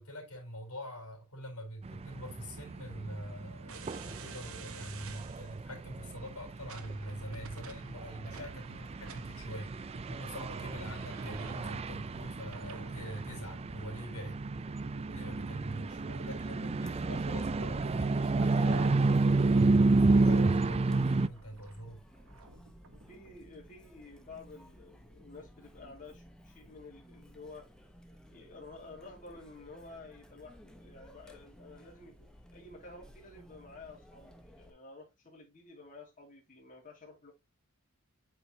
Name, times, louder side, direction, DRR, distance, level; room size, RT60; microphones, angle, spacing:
voice 1, 0.0-9.7 10.1-14.4 15.1-22.0, equal, 85° left, 3.7 m, -44 dB
sound 1, 1.9-21.3, right 3 dB, 30° right, 0.4 m, -30 dB
sound 2, 3.7-23.4, right 3 dB, 65° right, 1.1 m, -52 dB
Chatter, 16.8-34.7, equal, 5° left, 1.0 m, -56 dB
voice 2, 23.1-27.7 28.3-37.3, left 3 dB, 40° left, 2.5 m, -51 dB
8.3 x 4.9 x 2.8 m
head